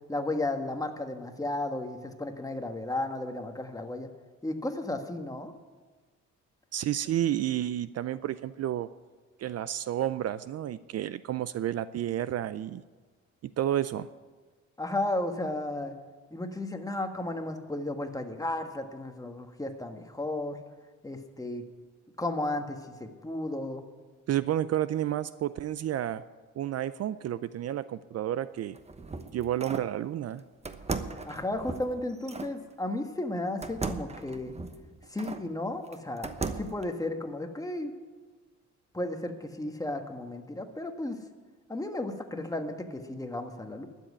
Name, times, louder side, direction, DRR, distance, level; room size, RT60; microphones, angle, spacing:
voice 1, 0.1-4.1 4.4-5.5 14.8-15.9 16.3-20.6 21.0-21.6 22.2-23.8 31.2-34.5 35.1-37.9 38.9-41.2 41.7-43.9, left 2 dB, 10° left, 5 dB, 1.4 m, -34 dB
voice 2, 6.7-8.9 9.4-12.8 13.4-14.1 24.3-26.2 26.6-28.8 29.3-30.4, right 11 dB, 55° right, 15 dB, 0.5 m, -31 dB
sound 1, 28.6-29.9 30.6-32.5 33.6-35.5 35.9-36.8, right 3 dB, 20° right, 1.0 m, -37 dB
12.0 x 7.6 x 9.7 m, 1.4 s
cardioid pair, 90°, 30 cm